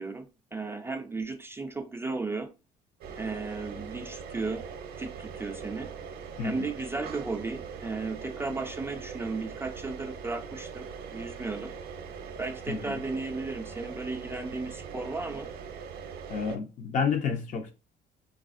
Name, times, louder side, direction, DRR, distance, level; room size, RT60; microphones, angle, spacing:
voice 1, 0.0-2.5 3.2-4.7 5.0-5.9 6.4-10.9 11.1-11.7 12.4-15.5, right 3 dB, 15° right, 0.3 m, -35 dB
sound 1, 3.0-16.6, right 6 dB, 65° right, 0.5 m, -41 dB
voice 2, 16.3-17.7, left 5 dB, 50° left, 0.6 m, -30 dB
3.3 x 2.3 x 2.4 m
cardioid pair, 110°, 17 cm